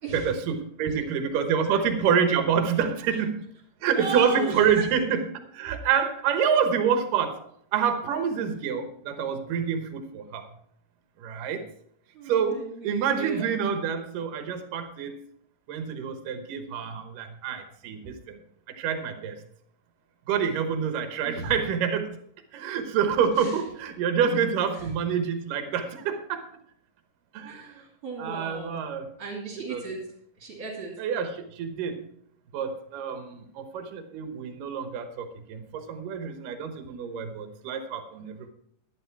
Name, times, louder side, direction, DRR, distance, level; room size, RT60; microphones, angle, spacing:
voice 1, 0.1-3.5 3.8-7.4 7.7-10.5 11.2-11.6 12.3-15.2 15.7-18.4 18.8-19.4 20.3-22.2 22.5-26.4 27.3-27.8 28.2-29.1 29.7-29.8 31.0-32.1 32.5-38.5, right 7 dB, 85° right, 8 dB, 2.7 m, -27 dB
voice 2, 0.9-1.8 3.9-4.8 12.1-13.5 21.2-21.5 23.4-23.6 24.8-24.9 27.5-28.7 29.2-30.0 30.4-30.9, right 3 dB, 45° right, -7 dB, 3.7 m, -36 dB
11.5 x 10.0 x 4.6 m, 0.68 s
omnidirectional pair, 3.7 m